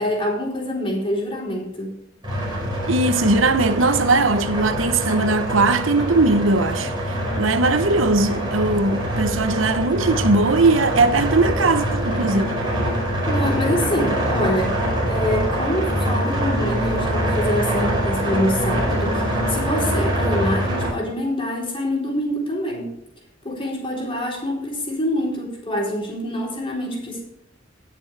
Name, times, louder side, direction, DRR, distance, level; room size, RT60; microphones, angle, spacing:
voice 1, 0.0-2.0 13.3-14.8 15.1-22.9 23.4-27.2, left 1 dB, 25° left, 3.8 m, -25 dB
sound 1, 2.2-20.9, equal, 25° right, 5.3 m, -24 dB
voice 2, 2.9-12.6, right 3 dB, 90° right, 0.9 m, -19 dB
19.5 x 6.9 x 3.4 m
head